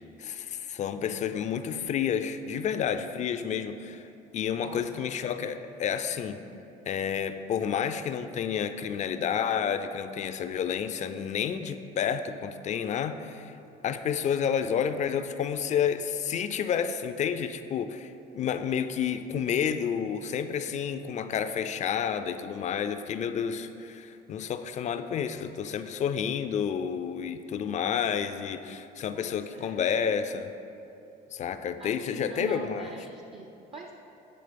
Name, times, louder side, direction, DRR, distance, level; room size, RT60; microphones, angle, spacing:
voice 1, 0.2-4.1 4.3-6.4 6.9-13.5 13.8-30.5 31.3-32.9, left 8 dB, 45° left, 10 dB, 0.4 m, -30 dB
voice 2, 4.6-5.0 29.1-29.8 31.8-33.9, right 4 dB, 35° right, 4 dB, 0.4 m, -44 dB
8.7 x 3.8 x 5.1 m, 2.8 s
cardioid pair, 110°, 17 cm